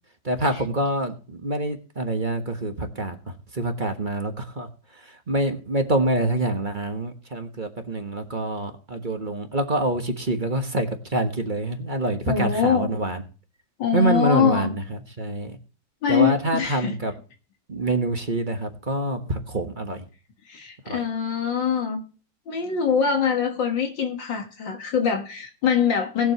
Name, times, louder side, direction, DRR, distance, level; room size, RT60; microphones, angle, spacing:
voice 1, 0.2-13.2 13.9-15.6 16.1-17.1 17.7-20.1 20.9-21.0, right 2 dB, 30° right, 5 dB, 1.3 m, -26 dB
voice 2, 12.3-12.9 13.8-14.7 16.0-17.0 20.5-22.0 22.5-26.3, left 7 dB, 70° left, 4 dB, 2.3 m, -23 dB
20.0 x 7.4 x 3.0 m, 0.37 s
omnidirectional pair, 2.1 m